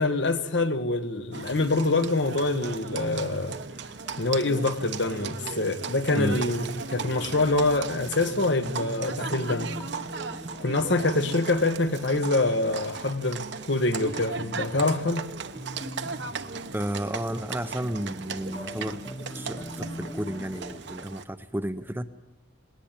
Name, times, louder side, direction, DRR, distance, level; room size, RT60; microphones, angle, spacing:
voice 1, 0.0-3.6 4.2-9.7 10.6-15.3, left 2 dB, 65° left, 1.4 m, -25 dB
Livestock farm animals working animals, 1.3-21.2, right 5 dB, 65° right, 1.0 m, -37 dB
sound 1, 2.3-20.8, equal, 20° left, 1.2 m, -43 dB
voice 2, 16.7-22.1, right 1 dB, 10° right, 0.7 m, -32 dB
20.0 x 19.0 x 8.8 m
head